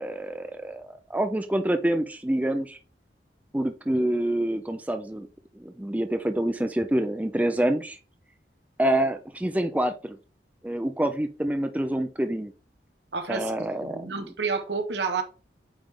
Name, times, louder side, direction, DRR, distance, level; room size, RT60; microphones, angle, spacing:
voice 1, 0.0-2.8 3.5-5.3 5.6-8.0 8.8-10.2 10.6-12.5 13.3-14.3, right 1 dB, 10° right, 0.5 m, -27 dB
voice 2, 13.1-15.2, right 4 dB, 80° right, 1.2 m, -30 dB
8.7 x 3.7 x 3.3 m
head